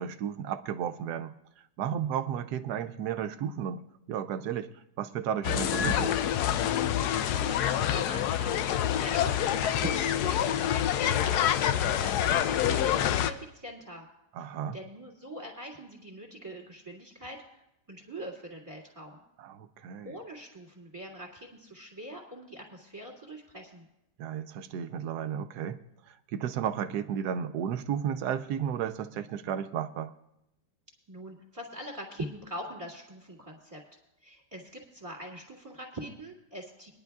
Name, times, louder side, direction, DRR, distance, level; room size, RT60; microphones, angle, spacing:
voice 1, 0.0-6.2 14.3-14.8 19.4-20.1 24.2-30.1, right 8 dB, 75° right, 10 dB, 1.1 m, -33 dB
sound 1, 5.4-13.3, left 10 dB, 75° left, 1.1 m, -27 dB
voice 2, 7.2-14.1 14.7-17.4 17.9-19.2 20.0-23.9 31.1-33.8 34.2-36.9, right 1 dB, 20° right, -1 dB, 2.3 m, -42 dB
22.0 x 10.5 x 2.4 m, 0.83 s
omnidirectional pair, 1.8 m